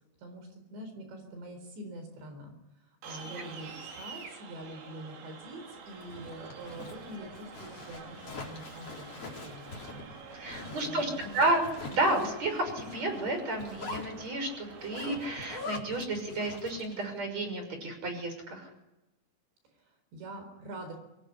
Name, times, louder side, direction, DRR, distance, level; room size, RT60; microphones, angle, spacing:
voice 1, 0.2-2.5 3.0-10.0 10.3-11.4 19.8-21.0, right 1 dB, 60° right, 6 dB, 6.4 m, -45 dB
sound 1, 3.0-15.6, right 5 dB, 80° right, 6.2 m, -48 dB
Zipper (clothing), 5.9-17.1, left 4 dB, 30° left, 4.5 m, -44 dB
voice 2, 10.4-18.7, right 2 dB, 35° right, 6 dB, 7.0 m, -31 dB
25.5 x 22.0 x 9.9 m, 0.97 s
omnidirectional pair, 5.7 m